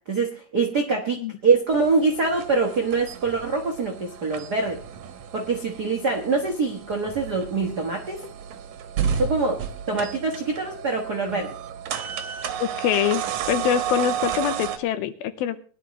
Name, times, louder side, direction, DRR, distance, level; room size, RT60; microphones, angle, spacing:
voice 1, 0.1-4.8 5.3-8.2 9.1-9.6 9.9-11.6, right 4 dB, 80° right, 1 dB, 0.9 m, -24 dB
sound 1, 1.7-14.8, right 8 dB, 65° right, 2.1 m, -32 dB
voice 2, 12.6-13.2 13.5-15.6, left 10 dB, 85° left, 11 dB, 2.7 m, -24 dB
21.0 x 11.0 x 3.1 m, 0.41 s
omnidirectional pair, 4.3 m